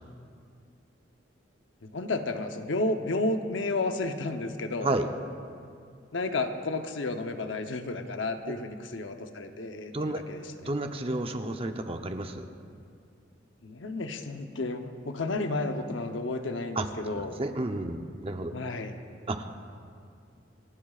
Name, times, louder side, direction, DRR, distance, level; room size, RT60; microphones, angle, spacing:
voice 1, 1.8-4.9 6.1-10.4 13.6-17.3 18.5-19.0, left 2 dB, 90° left, 6 dB, 0.8 m, -32 dB
voice 2, 10.6-12.5 16.8-18.5 19.3-19.5, right 2 dB, 30° right, 6 dB, 0.7 m, -31 dB
29.0 x 12.5 x 2.4 m, 2.4 s
head